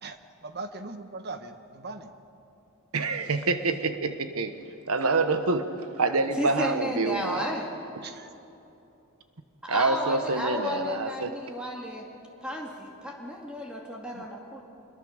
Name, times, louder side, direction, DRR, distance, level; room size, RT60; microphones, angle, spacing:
voice 1, 0.0-2.1 8.0-8.3, right 3 dB, 50° right, 8 dB, 1.3 m, -40 dB
voice 2, 2.9-4.6 4.9-7.5 9.7-11.3 14.2-14.3, right 3 dB, 75° right, 9 dB, 1.2 m, -27 dB
voice 3, 6.4-7.7 9.6-12.1 12.4-14.6, equal, 5° right, -2 dB, 2.2 m, -32 dB
25.5 x 22.0 x 6.5 m, 2.9 s
head